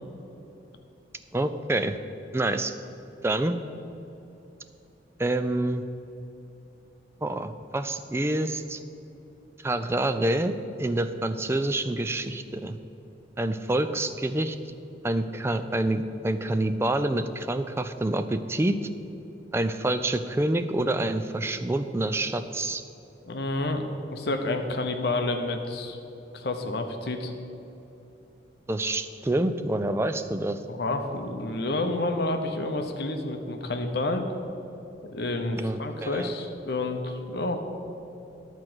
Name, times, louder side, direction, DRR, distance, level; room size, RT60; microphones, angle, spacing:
voice 1, 1.3-2.0 2.3-2.7 3.2-3.6 5.2-5.8 7.2-8.8 9.6-12.8 13.4-14.6 15.0-18.8 19.5-22.8 28.7-30.6 35.5-36.3, right 1 dB, 15° right, 10 dB, 0.3 m, -27 dB
voice 2, 23.3-26.0 26.3-27.3 30.7-34.3 35.1-37.6, left 2 dB, 60° left, 6 dB, 0.8 m, -29 dB
10.5 x 4.5 x 7.8 m, 3.0 s
head